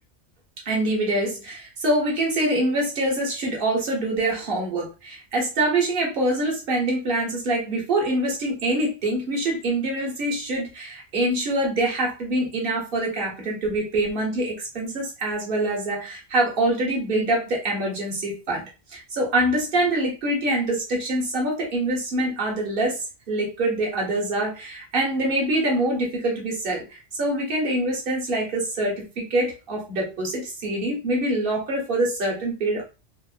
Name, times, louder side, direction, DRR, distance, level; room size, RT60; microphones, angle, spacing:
voice 1, 0.6-18.6 18.9-32.8, right 1 dB, 50° right, -1 dB, 1.0 m, -25 dB
2.8 x 2.0 x 2.3 m, 0.31 s
omnidirectional pair, 1.2 m